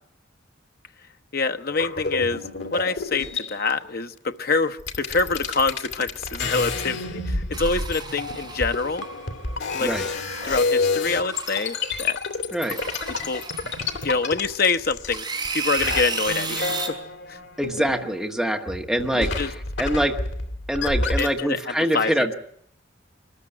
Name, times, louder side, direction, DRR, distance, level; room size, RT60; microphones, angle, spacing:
voice 1, 1.3-2.4 2.7-9.0 9.7-9.9 10.4-12.2 13.2-13.4 14.0-15.2 15.5-16.8 17.3-17.4 19.2-19.5 21.2-22.1, left 4 dB, 50° left, 0.9 m, -25 dB
sound 1, 1.7-3.7 4.5-4.6 4.8-15.5 15.8-18.4 18.7-21.4, left 3 dB, 70° left, 2.7 m, -29 dB
sound 2, 7.5-9.1 10.3-10.9 11.3-12.1 12.6-14.3 15.1-16.9, right 4 dB, 25° right, 4.6 m, -33 dB
voice 2, 17.6-20.2 20.7-22.3, equal, ahead, 1.5 m, -24 dB
24.5 x 14.0 x 9.9 m
head